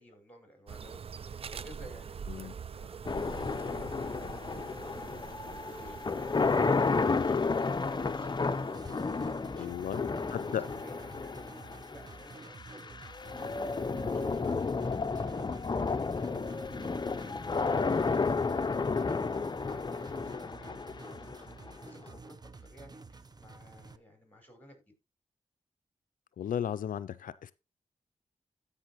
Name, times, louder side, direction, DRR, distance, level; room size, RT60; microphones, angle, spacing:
voice 1, 0.0-24.9, equal, 10° left, 4.8 m, -56 dB
sound 1, 0.7-9.3, right 6 dB, 45° right, 0.4 m, -45 dB
sound 2, 3.1-22.1, left 4 dB, 35° left, 0.6 m, -32 dB
sound 3, 8.7-24.0, right 3 dB, 30° right, 0.8 m, -50 dB
voice 2, 9.6-10.6 26.4-27.5, left 9 dB, 85° left, 0.4 m, -35 dB
15.5 x 5.5 x 3.0 m
cardioid pair, 70°, 14 cm